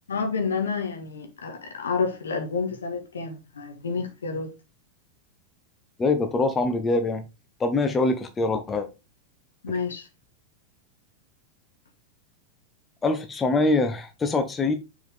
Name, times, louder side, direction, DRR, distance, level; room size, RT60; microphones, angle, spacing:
voice 1, 0.1-4.5 9.6-10.1, left 5 dB, 70° left, 1.8 m, -29 dB
voice 2, 6.0-7.2 7.6-8.9 13.0-14.7, left 3 dB, 15° left, 0.9 m, -24 dB
7.0 x 4.7 x 3.6 m
figure-of-eight pair, 90°, 0 cm